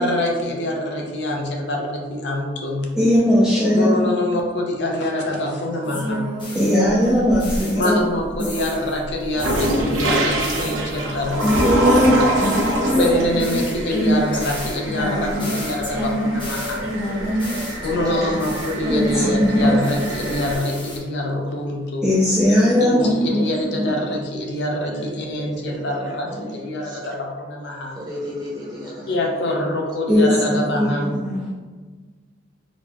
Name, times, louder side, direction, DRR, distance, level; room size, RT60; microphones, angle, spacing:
voice 1, 0.0-2.9 3.7-6.3 7.7-12.1 12.9-16.9 17.8-22.1 22.8-28.0 29.1-31.2, left 1 dB, 60° left, 0 dB, 0.5 m, -25 dB
voice 2, 3.0-4.0 6.5-8.0 8.4-8.5 11.4-13.2 18.9-19.8 20.3-20.4 22.0-23.5 23.8-23.9 30.1-31.5, equal, 5° right, -9 dB, 0.4 m, -18 dB
sound 1, 5.8-8.1 8.4-9.0 9.4-19.5 19.8-21.0, equal, 25° left, 0.9 m, -29 dB
sound 2, 6.8-7.8 8.2-20.6, right 1 dB, 85° right, 0.6 m, -26 dB
voice 3, 17.2-18.1 24.8-27.1 27.9-29.3, left 1 dB, 20° right, -6 dB, 0.8 m, -35 dB
4.0 x 2.3 x 2.2 m, 1.4 s
head